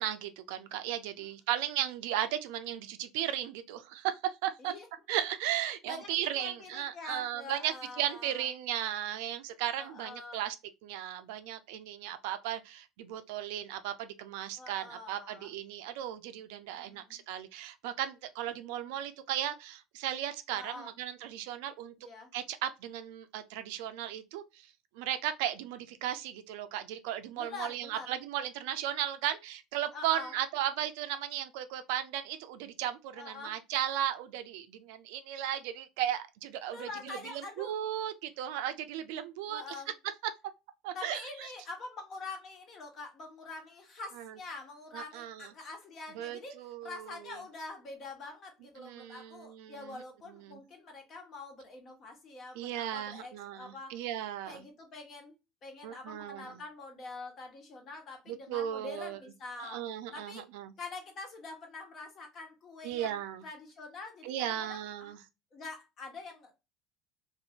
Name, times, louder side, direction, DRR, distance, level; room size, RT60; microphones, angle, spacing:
voice 1, 0.0-4.7 5.1-10.6 10.8-21.9 22.3-39.6 40.8-41.5 44.2-44.4 44.9-45.5 46.1-47.4 48.8-50.0 50.4-50.6 52.6-54.6 55.8-56.5 58.3-59.2 59.6-60.7 62.8-63.4 64.2-65.2, right 11 dB, 75° right, 0.4 m, -36 dB
voice 2, 5.8-8.5 9.8-10.4 14.6-15.5 16.7-17.2 20.5-20.9 22.0-22.3 27.4-28.1 29.9-30.3 33.1-33.5 36.7-37.8 39.5-39.9 40.9-54.0 54.5-55.3 55.6-59.9 60.1-60.4 60.8-65.1 65.5-66.5, left 3 dB, 45° left, 1.4 m, -45 dB
3.0 x 2.6 x 2.7 m
hypercardioid pair, 75°, 0 cm